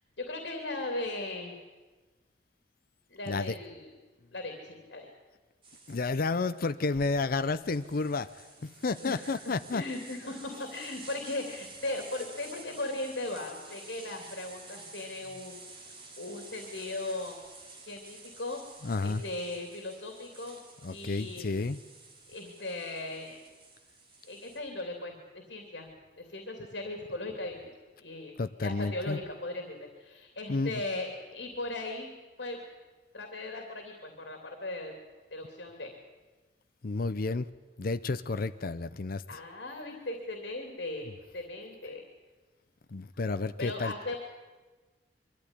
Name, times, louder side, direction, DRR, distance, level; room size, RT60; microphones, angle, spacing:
voice 1, 0.2-1.5 3.1-3.9 4.3-5.1 9.0-9.3 9.7-15.6 16.2-17.4 17.9-18.6 19.0-20.6 20.9-21.6 22.3-23.4 24.2-25.9 26.2-27.6 28.0-28.4 28.6-32.6 33.1-34.9 35.3-35.9 39.3-42.0 43.6-44.2, left 2 dB, 75° left, 3 dB, 3.0 m, -38 dB
sound 1, 5.6-24.6, right 3 dB, 30° right, 3.3 m, -51 dB
voice 2, 5.9-8.3 8.6-9.8 18.8-19.2 20.8-21.8 28.4-29.2 30.5-30.8 36.8-37.5 37.8-39.2 42.9-43.9, left 3 dB, 55° left, 12 dB, 0.6 m, -31 dB
23.0 x 14.0 x 9.9 m, 1.2 s
head